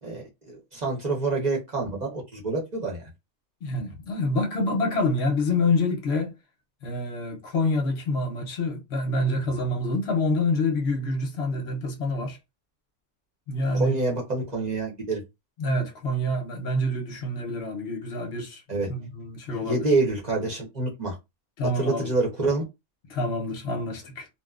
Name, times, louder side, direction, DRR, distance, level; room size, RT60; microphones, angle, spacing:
voice 1, 0.0-3.0 13.7-15.2 18.7-18.9 19.5-21.2 21.8-22.6, right 3 dB, 35° right, 0.8 m, -27 dB
voice 2, 3.6-6.3 6.8-12.4 13.5-14.0 15.6-18.6 18.9-19.9 21.6-22.1 23.1-24.3, left 2 dB, 55° left, 0.8 m, -27 dB
2.8 x 2.2 x 2.3 m
omnidirectional pair, 1.5 m